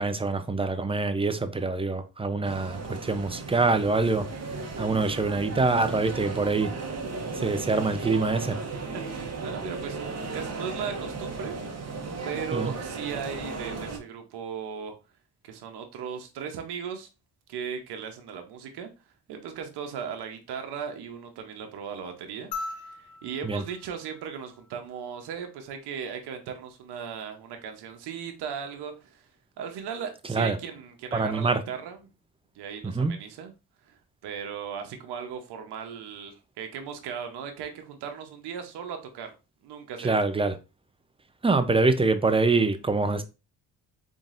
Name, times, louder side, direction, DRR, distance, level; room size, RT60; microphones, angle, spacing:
voice 1, 0.0-4.3 4.8-6.7 7.3-8.6 12.5-12.7 23.4-23.6 30.3-30.6 31.1-31.6 32.8-33.1 40.0-40.5 41.4-43.2, right 3 dB, 15° right, 0.6 m, -25 dB
sound 1, 2.4-14.0, right 3 dB, 40° right, 1.0 m, -35 dB
voice 2, 8.9-11.6 12.2-14.9 15.4-17.1 17.5-18.9 19.3-22.5 22.8-29.3 29.6-32.1 32.5-33.5 33.8-39.3 39.6-40.1, right 7 dB, 90° right, 0.8 m, -37 dB
sound 2, 22.5-25.1 26.7-26.8, left 3 dB, 85° left, 1.0 m, -40 dB
3.9 x 3.6 x 2.5 m
cardioid pair, 75°, 39 cm